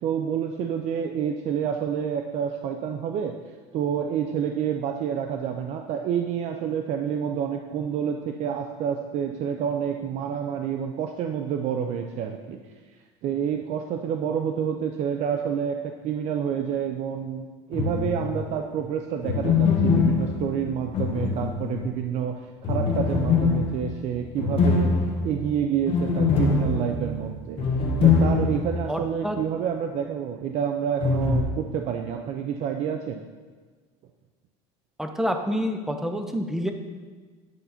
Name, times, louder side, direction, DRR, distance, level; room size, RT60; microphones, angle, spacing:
voice 1, 0.0-3.3 3.7-12.6 13.2-22.4 22.6-24.9 25.2-27.7 28.0-33.2, right 8 dB, 50° right, 4 dB, 0.5 m, -28 dB
sound 1, 17.7-18.5 19.2-22.0 22.6-28.9 29.1-29.2 31.0-31.4, left 4 dB, 40° left, 1.2 m, -23 dB
voice 2, 28.9-29.4 35.0-36.7, equal, 5° right, 6 dB, 0.7 m, -27 dB
9.2 x 4.0 x 5.7 m, 1.4 s
cardioid pair, 125°, 14 cm